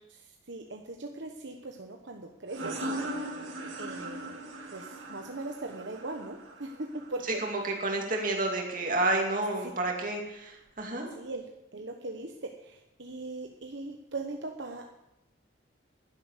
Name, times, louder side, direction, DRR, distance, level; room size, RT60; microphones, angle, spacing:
voice 1, 0.1-3.1 3.8-4.4 4.7-7.8 11.1-11.4 11.7-15.0, right 2 dB, 65° right, 3 dB, 1.1 m, -40 dB
sound 1, 2.5-7.9, right 1 dB, 85° right, 2.5 m, -39 dB
voice 2, 7.4-11.1, right 2 dB, 45° right, 1 dB, 2.6 m, -30 dB
11.5 x 10.5 x 6.7 m, 0.88 s
head